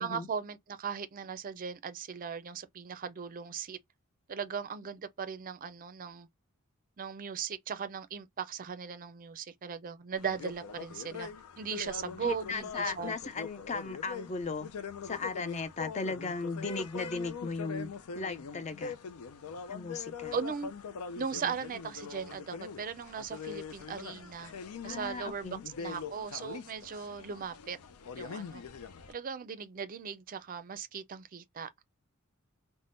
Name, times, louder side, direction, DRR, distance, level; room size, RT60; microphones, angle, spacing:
voice 1, 0.0-3.8 4.3-6.3 7.0-11.3 11.6-13.1 20.3-20.7 21.2-24.5 24.8-27.8 28.2-28.6 29.1-31.7, right 6 dB, 40° right, 0.4 m, -38 dB
sound 1, 10.2-29.1, left 6 dB, 85° left, 0.5 m, -43 dB
voice 2, 12.2-14.7 15.0-17.9 18.2-18.9 19.7-20.3 21.4-21.5 24.8-25.6, left 4 dB, 30° left, 0.4 m, -36 dB
3.4 x 2.1 x 2.5 m
head